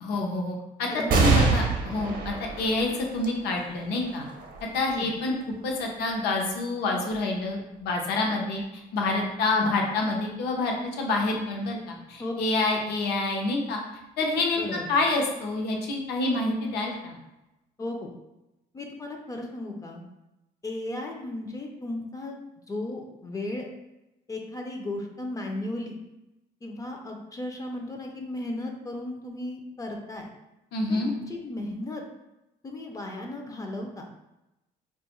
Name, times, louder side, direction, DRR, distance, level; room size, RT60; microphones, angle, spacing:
voice 1, 0.0-4.2 4.7-5.3 5.6-13.8 14.2-17.2 30.7-31.1, left 2 dB, 75° left, 1 dB, 0.6 m, -27 dB
sound 1, 1.1-8.0 8.6-8.7 9.8-10.4, right 4 dB, 55° right, 0.7 m, -29 dB
voice 2, 14.6-14.9 17.8-18.1 18.7-20.0 20.6-22.4 22.7-23.7 24.3-26.0 26.6-30.3 30.9-32.0 32.6-34.1, left 2 dB, 20° left, 1 dB, 0.3 m, -35 dB
2.4 x 2.3 x 2.9 m, 0.94 s
cardioid pair, 110°, 17 cm